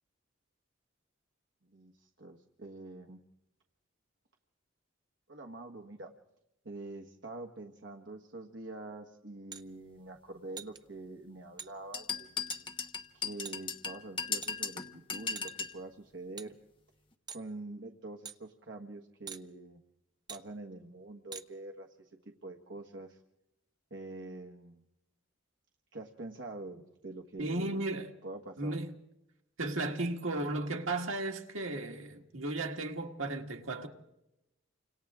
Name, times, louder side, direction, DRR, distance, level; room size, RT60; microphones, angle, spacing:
voice 1, 1.7-3.2 5.3-6.1 6.6-16.5 17.3-19.8 20.3-23.2 23.9-24.8 25.9-27.9 28.2-28.8, right 2 dB, 65° right, 1.5 m, -46 dB
sound 1, 9.5-9.6 10.6-10.8 11.6-11.7 12.5-12.6 13.4-13.6 14.4-14.9 15.4-15.7 16.4-16.5 17.3-17.5 18.2-18.4 19.3-19.4 20.3-20.4 21.3-21.5, right 6 dB, 20° right, 0.7 m, -44 dB
sound 2, 11.9-15.8, left 5 dB, 25° left, 1.2 m, -37 dB
voice 2, 27.4-28.1 28.6-28.9 29.6-33.9, right 2 dB, 90° right, 1.9 m, -35 dB
29.5 x 26.5 x 3.7 m
head